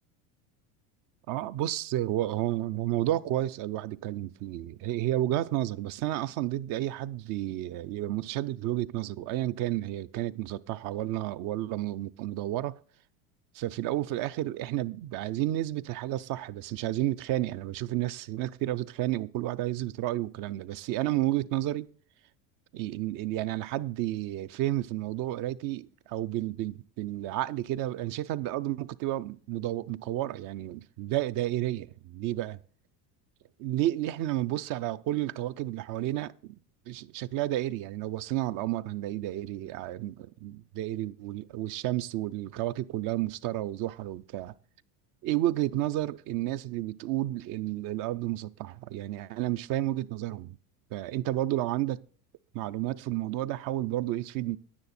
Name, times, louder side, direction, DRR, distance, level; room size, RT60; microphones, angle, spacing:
voice 1, 1.3-12.8 13.5-21.9 22.7-32.6 33.6-36.6 36.9-44.5 45.2-50.6 50.9-52.0 52.5-54.6, right 14 dB, 50° right, 0.5 m, -31 dB
9.7 x 9.7 x 4.2 m
supercardioid pair, 125°, 43 cm